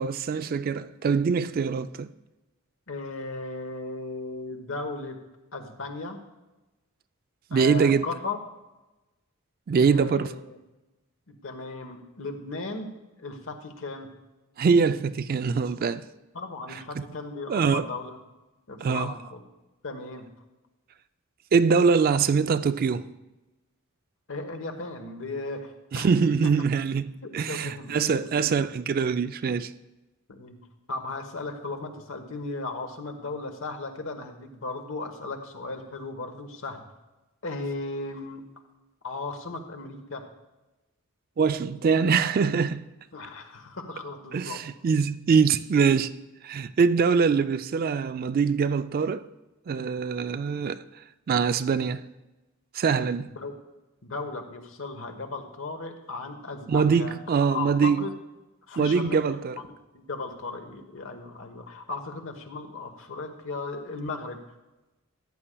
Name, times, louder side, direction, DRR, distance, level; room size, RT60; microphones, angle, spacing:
voice 1, 0.0-2.1 7.5-8.1 9.7-10.3 14.6-16.0 17.5-17.9 18.8-19.1 21.5-23.0 25.9-29.7 41.4-42.8 44.3-46.1 46.4-49.2 49.7-50.8 51.3-52.0 52.7-53.3 56.7-58.1 58.8-59.6, right 5 dB, 45° right, 0.3 m, -23 dB
voice 2, 2.9-5.2 5.5-6.2 7.5-8.4 9.8-10.6 11.4-12.9 13.2-14.1 16.3-18.2 18.7-19.4 19.8-20.3 24.3-26.1 27.2-28.7 30.3-30.6 30.9-36.8 37.4-38.4 39.0-40.2 43.1-44.6 53.3-53.5 54.0-58.1 58.7-59.2 59.5-59.6 59.9-64.4, left 3 dB, 65° left, 1.1 m, -36 dB
14.0 x 9.9 x 2.3 m
head